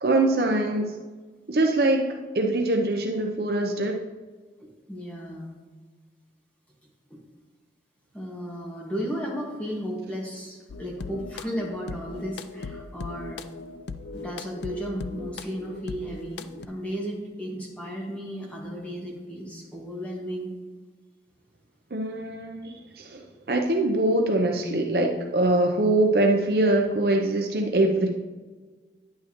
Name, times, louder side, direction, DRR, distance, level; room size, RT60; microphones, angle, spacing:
voice 1, 0.0-0.9 1.5-4.0 21.9-28.1, right 2 dB, 60° right, 2 dB, 0.7 m, -23 dB
voice 2, 4.6-5.5 7.1-7.2 8.1-13.4 14.1-20.5, equal, 5° left, -3 dB, 1.6 m, -34 dB
sound 1, 10.7-16.7, left 4 dB, 80° left, 0.4 m, -39 dB
9.8 x 8.5 x 3.0 m, 1.4 s
head